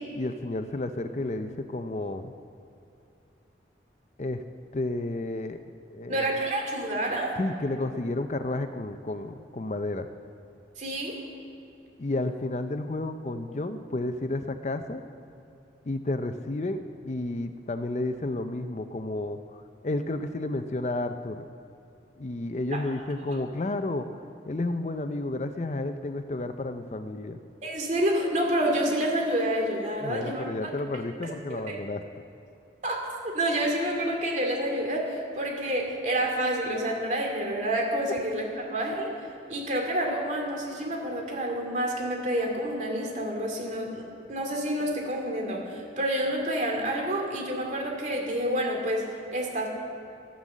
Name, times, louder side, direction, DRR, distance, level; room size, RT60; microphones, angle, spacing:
voice 1, 0.1-2.3 4.2-4.4 4.7-5.6 5.9-6.4 7.4-10.1 12.0-15.0 15.9-21.5 22.2-24.1 24.5-27.4 30.0-32.0, left 2 dB, 40° left, 9 dB, 0.5 m, -31 dB
voice 2, 6.1-7.3 10.8-11.1 22.7-22.8 27.6-30.5 31.2-31.8 32.8-39.1 39.5-49.7, right 1 dB, 40° right, 0 dB, 2.6 m, -28 dB
13.0 x 10.0 x 7.4 m, 2.7 s
head